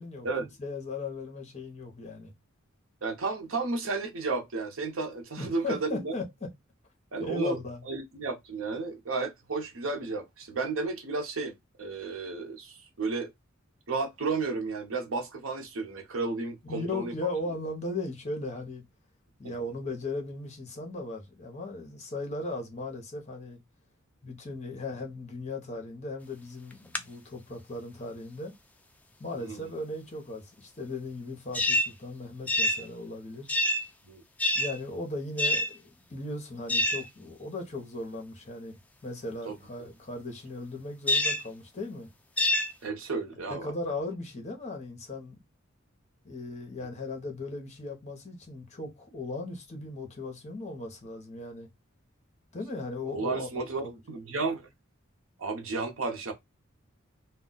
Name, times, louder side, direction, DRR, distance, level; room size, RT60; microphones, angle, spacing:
voice 1, 0.0-2.3 5.4-6.5 7.2-7.8 16.6-18.8 19.4-23.6 24.2-28.5 29.2-33.5 34.5-42.1 43.5-45.4 46.2-51.7 52.5-54.0, left 2 dB, 35° left, 0.8 m, -37 dB
voice 2, 3.0-6.1 7.1-7.6 7.8-13.3 13.9-17.1 29.3-29.6 34.1-34.2 39.5-39.6 42.8-43.7 53.1-54.7 55.4-56.3, right 3 dB, 70° right, 0.7 m, -33 dB
sound 1, 26.7-27.0 31.5-31.9 32.5-32.9 33.5-33.9 34.4-34.8 35.4-35.7 36.7-37.1 41.1-41.5 42.4-42.7, left 1 dB, 5° left, 0.3 m, -26 dB
2.3 x 2.1 x 3.8 m
head